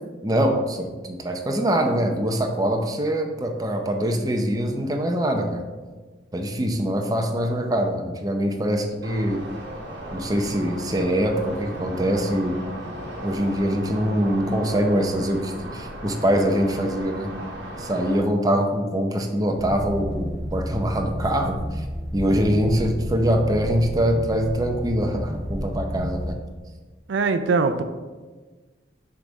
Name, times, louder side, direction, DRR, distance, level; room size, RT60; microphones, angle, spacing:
voice 1, 0.2-5.6 6.3-9.4 10.1-12.7 13.2-17.3 17.8-21.9 22.1-26.3, equal, 20° right, 3 dB, 0.6 m, -23 dB
sound 1, 9.0-18.2, right 1 dB, 60° right, 1.3 m, -36 dB
sound 2, 19.5-26.3, equal, ahead, 1.0 m, -31 dB
voice 2, 27.1-27.8, right 4 dB, 75° right, 10 dB, 0.4 m, -21 dB
6.4 x 3.5 x 5.2 m, 1.3 s
head